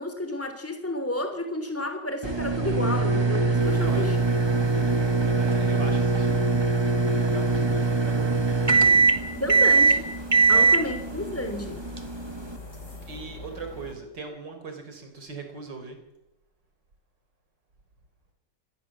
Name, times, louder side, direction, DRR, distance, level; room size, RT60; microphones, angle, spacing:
voice 1, 0.0-4.2 9.4-10.1 10.5-11.9, left 1 dB, 5° left, 7 dB, 3.1 m, -31 dB
sound 1, 2.2-12.6, right 3 dB, 15° right, 1.3 m, -22 dB
sound 2, 3.6-13.9, left 2 dB, 45° left, 4.2 m, -43 dB
voice 2, 3.7-4.1 4.7-4.9 5.2-8.9 10.5-11.0 13.1-16.0, right 4 dB, 90° right, 6 dB, 4.5 m, -40 dB
25.5 x 18.5 x 7.4 m, 0.93 s
omnidirectional pair, 1.9 m